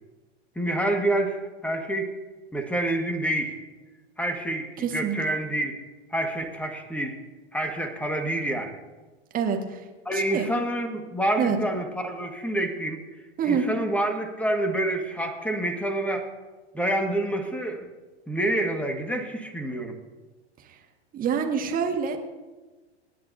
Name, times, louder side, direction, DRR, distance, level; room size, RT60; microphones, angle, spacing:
voice 1, 0.6-2.1 2.5-3.6 4.2-5.8 6.1-7.2 7.5-8.8 10.1-13.0 13.4-16.3 16.7-17.9 18.3-20.0, right 1 dB, 5° left, 5 dB, 1.7 m, -27 dB
voice 2, 4.8-5.2 9.3-9.8 10.1-10.5 11.4-11.6 13.4-13.7 20.7-20.8 21.1-22.2, right 7 dB, 25° right, 4 dB, 1.7 m, -26 dB
27.5 x 9.8 x 2.7 m, 1.2 s
figure-of-eight pair, 95°, 33 cm